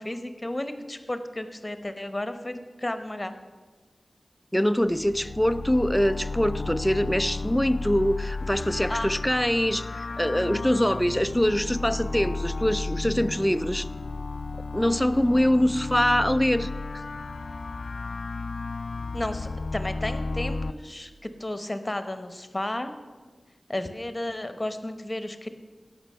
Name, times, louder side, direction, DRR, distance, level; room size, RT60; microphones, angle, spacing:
voice 1, 0.0-3.3 8.9-9.1 19.1-22.9 23.7-25.5, left 1 dB, 25° left, 9 dB, 1.0 m, -33 dB
voice 2, 4.5-13.9 14.7-16.7, equal, 5° left, 13 dB, 0.5 m, -24 dB
sound 1, 4.8-20.7, left 3 dB, 70° left, 0.4 m, -33 dB
16.5 x 6.0 x 5.6 m, 1.4 s
wide cardioid pair, 50°, 0 cm